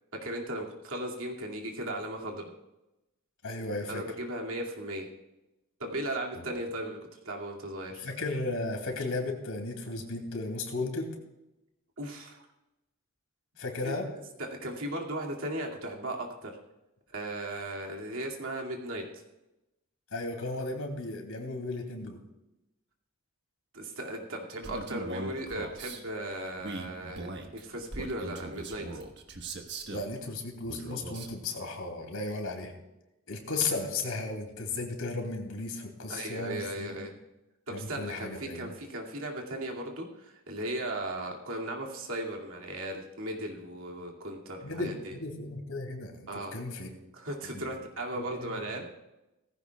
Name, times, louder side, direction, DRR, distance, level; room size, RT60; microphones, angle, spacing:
voice 1, 0.2-2.5 3.9-5.1 5.8-7.0 7.2-8.1 12.0-12.5 13.8-14.0 14.4-16.5 17.1-19.0 23.7-28.9 36.1-37.1 37.7-45.1 46.3-46.6 47.1-48.9, right 1 dB, 70° right, 0 dB, 2.4 m, -37 dB
voice 2, 3.4-4.0 8.0-11.2 13.6-14.1 20.1-22.2 29.9-32.7 33.3-37.1 37.7-38.7 44.6-46.9 47.5-47.6 48.1-48.5, left 3 dB, 80° left, 3 dB, 2.8 m, -35 dB
Male speech man speaking, 24.6-26.0 26.6-30.1 30.6-31.4, right 2 dB, 50° right, 1.4 m, -40 dB
18.0 x 15.5 x 2.4 m, 0.94 s
head